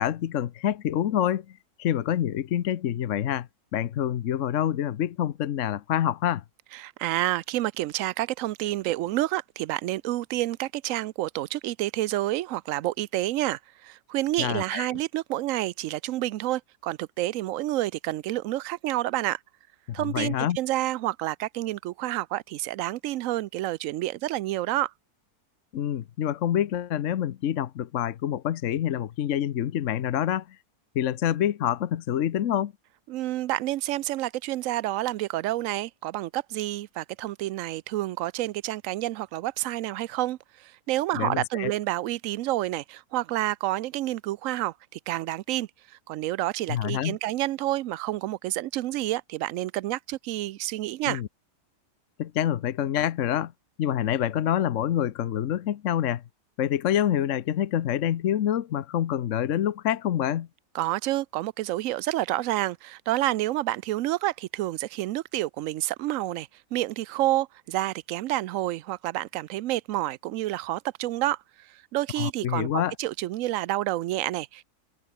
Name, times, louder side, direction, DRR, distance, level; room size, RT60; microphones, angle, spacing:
voice 1, 0.0-1.5 1.8-3.5 3.7-6.4 14.4-14.9 20.0-20.6 25.7-30.6 30.9-32.7 41.1-41.7 46.7-47.2 51.1-51.3 52.2-53.5 53.8-56.2 56.6-60.5 72.2-72.9, left 10 dB, 60° left, 1.0 m, -26 dB
voice 2, 6.7-19.4 19.9-24.9 33.1-51.2 60.7-74.6, right 15 dB, 70° right, 0.8 m, -29 dB
omnidirectional pair, 1.7 m